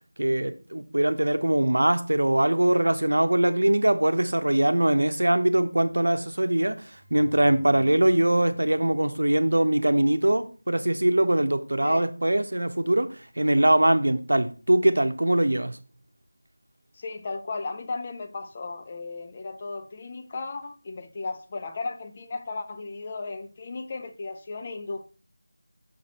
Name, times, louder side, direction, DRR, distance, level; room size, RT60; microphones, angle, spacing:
voice 1, 0.2-13.1 13.4-15.8, right 1 dB, 75° right, 0.8 m, -22 dB
sound 1, 6.9-10.1, left 1 dB, 5° right, 0.9 m, -49 dB
voice 2, 16.9-25.0, left 3 dB, 25° left, 0.5 m, -35 dB
6.1 x 4.0 x 4.3 m
figure-of-eight pair, 170°, 0 cm